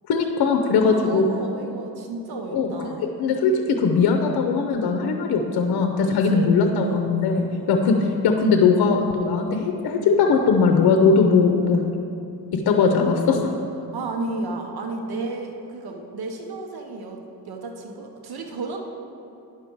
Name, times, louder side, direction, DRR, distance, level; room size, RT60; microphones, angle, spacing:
voice 1, 0.1-1.2 2.5-2.7 3.0-11.9 12.5-13.5, left 5 dB, 70° left, 4 dB, 0.7 m, -20 dB
voice 2, 0.8-3.1 6.0-7.8 13.9-18.8, right 3 dB, 70° right, 3 dB, 1.1 m, -33 dB
9.9 x 6.7 x 4.6 m, 2.8 s
cardioid pair, 100°, 38 cm